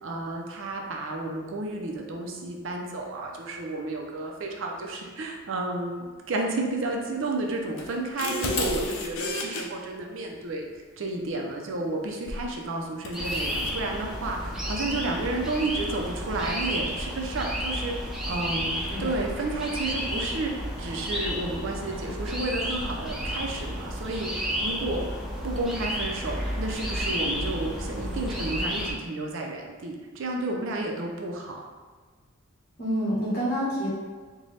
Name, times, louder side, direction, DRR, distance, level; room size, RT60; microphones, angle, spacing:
voice 1, 0.0-10.7 11.0-25.1 25.4-31.7, right 2 dB, 65° right, 1 dB, 0.5 m, -31 dB
sound 1, 7.8-9.6 12.3-12.5 13.0-13.8, left 2 dB, 70° left, 0.5 m, -31 dB
sound 2, 13.1-28.9, equal, ahead, 0.5 m, -32 dB
voice 2, 18.8-19.2 32.8-33.9, equal, 50° left, -7 dB, 1.2 m, -28 dB
4.0 x 2.2 x 3.2 m, 1.5 s
head